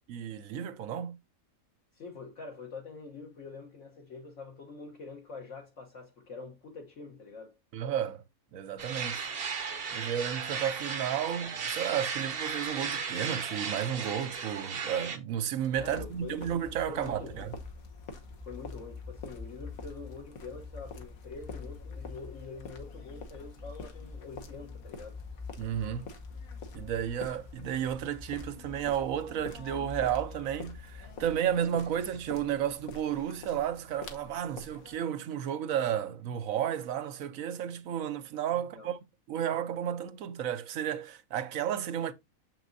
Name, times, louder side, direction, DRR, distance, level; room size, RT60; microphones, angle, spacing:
voice 1, 0.1-1.2 7.7-8.2 8.5-9.3 9.9-17.5 25.6-26.1 26.7-39.0 39.3-42.1, right 9 dB, 70° right, 1.1 m, -32 dB
voice 2, 1.9-7.6 15.8-16.5 16.9-17.5 18.4-25.2 38.5-38.9, left 4 dB, 60° left, 1.4 m, -45 dB
sound 1, 8.8-15.2, right 6 dB, 45° right, 1.0 m, -35 dB
sound 2, 15.6-35.0, left 3 dB, 80° left, 1.5 m, -48 dB
sound 3, 15.8-31.7, left 4 dB, 5° right, 0.6 m, -46 dB
7.1 x 6.0 x 2.6 m
omnidirectional pair, 1.5 m